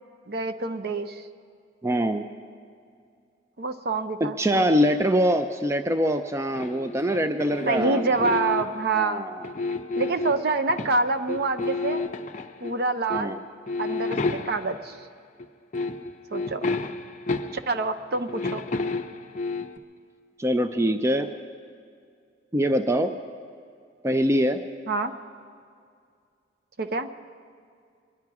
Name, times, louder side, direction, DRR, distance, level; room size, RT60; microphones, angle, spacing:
voice 1, 0.3-1.2 3.6-4.6 7.7-9.3 10.0-12.0 12.6-13.5 13.8-15.0 16.3-16.7 17.7-18.6 24.9-25.1 26.8-27.1, right 3 dB, 55° right, 9 dB, 0.7 m, -26 dB
voice 2, 1.8-2.2 4.2-8.3 8.9-9.4 13.1-13.4 20.4-21.3 22.5-23.2 24.0-24.6, equal, 15° right, 8 dB, 0.4 m, -24 dB
sound 1, 6.5-8.9 9.4-11.0 11.3-12.8 13.1-13.3 13.7-14.8 15.4-15.5 15.7-17.8 18.1-19.8, left 3 dB, 40° left, 0.7 m, -31 dB
23.5 x 10.5 x 4.8 m, 2.3 s
head